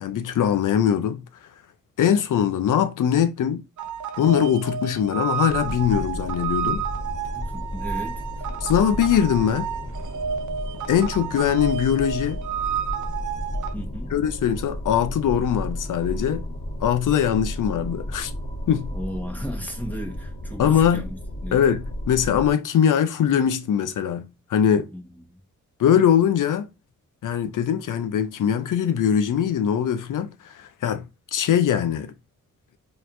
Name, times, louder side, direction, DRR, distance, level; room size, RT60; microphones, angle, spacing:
voice 1, 0.0-1.2 2.0-3.6 4.2-6.8 8.6-9.7 10.9-12.4 14.1-16.4 16.8-18.3 18.7-18.9 20.6-21.0 21.5-24.9 25.8-26.7 27.2-31.0 31.3-32.1, left 9 dB, 70° left, 0.6 m, -21 dB
sound 1, 3.8-13.7, right 8 dB, 65° right, 0.6 m, -31 dB
sound 2, 5.5-22.5, equal, 30° left, 1.7 m, -33 dB
voice 2, 7.3-8.5 13.7-14.1 18.9-21.6 24.9-25.4, equal, 5° left, 1.4 m, -36 dB
4.1 x 3.1 x 2.6 m
cardioid pair, 60°, 33 cm